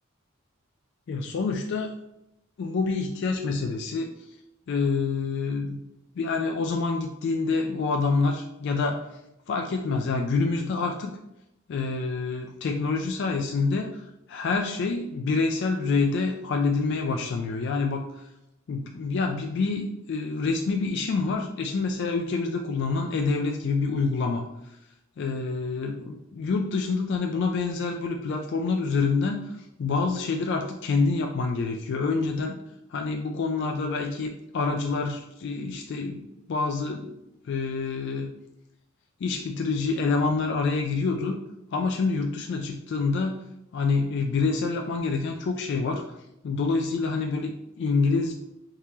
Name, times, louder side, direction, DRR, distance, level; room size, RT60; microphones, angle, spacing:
voice 1, 1.1-1.9 2.6-4.1 4.7-5.8 6.2-9.1 9.5-11.2 11.7-18.2 18.7-24.4 25.2-32.6 32.9-37.1 37.4-38.3 39.2-41.4 41.7-43.4 43.7-46.2 46.4-48.3, left 4 dB, 55° left, 3 dB, 0.3 m, -27 dB
3.6 x 2.8 x 3.0 m, 0.84 s
head